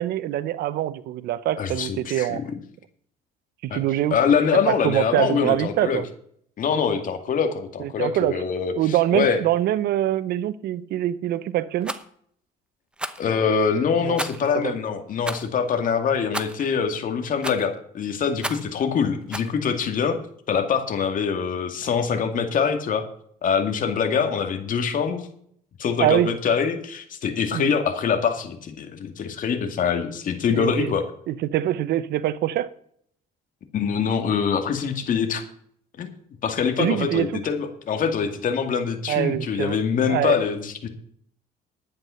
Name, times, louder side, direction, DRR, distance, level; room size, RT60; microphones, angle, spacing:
voice 1, 0.0-2.4 3.6-4.2 4.5-6.1 7.8-8.4 8.8-12.0 14.0-14.2 14.5-14.8 26.0-26.3 27.5-27.7 30.5-30.9 31.3-32.7 36.8-37.3 39.1-39.8 40.1-40.4, right 13 dB, 75° right, 0.9 m, -24 dB
voice 2, 1.6-2.6 3.7-3.8 4.1-6.0 6.6-9.4 13.2-20.2 20.5-23.0 23.4-25.3 25.8-31.0 33.7-35.4 36.0-36.1 36.4-40.9, left 6 dB, 50° left, 2.3 m, -24 dB
Rattle, 11.8-12.0 13.0-13.3 14.2-14.5 15.2-15.5 16.3-16.6 17.4-17.7 18.4-18.7 19.3-19.5, right 1 dB, 5° right, 1.0 m, -32 dB
11.5 x 9.5 x 5.7 m
cardioid pair, 110°, 17 cm